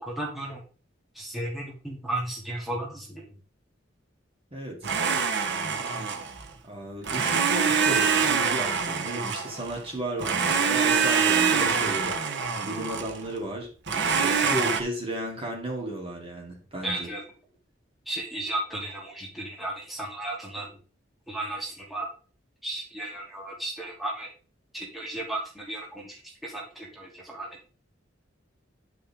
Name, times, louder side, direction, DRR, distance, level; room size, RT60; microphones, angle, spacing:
voice 1, 0.0-0.6 1.2-3.2 16.8-17.2 18.1-20.7 21.3-22.1 22.6-24.3 24.7-27.5, right 1 dB, ahead, -5 dB, 2.7 m, -34 dB
voice 2, 4.5-4.9 5.4-6.4 6.7-17.1, right 1 dB, 30° right, -1 dB, 2.8 m, -34 dB
Domestic sounds home sounds, 4.8-6.5 7.0-9.8 10.2-13.2 13.9-14.8, right 6 dB, 60° right, 1.1 m, -25 dB
10.0 x 6.0 x 3.6 m, 0.36 s
head